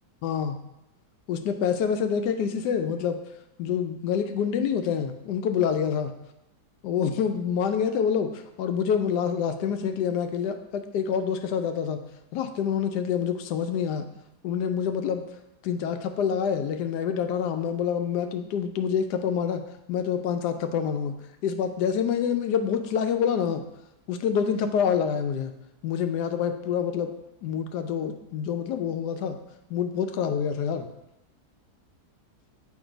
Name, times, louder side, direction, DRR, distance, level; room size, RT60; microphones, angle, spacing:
voice 1, 0.2-0.6 1.3-3.2 3.6-6.1 6.8-12.0 12.3-14.1 14.4-15.2 15.6-19.6 19.9-21.2 21.4-23.6 24.1-25.5 25.8-27.1 27.4-29.4 29.7-30.9, left 7 dB, 85° left, 8 dB, 1.2 m, -27 dB
7.3 x 3.2 x 5.0 m, 0.89 s
omnidirectional pair, 1.7 m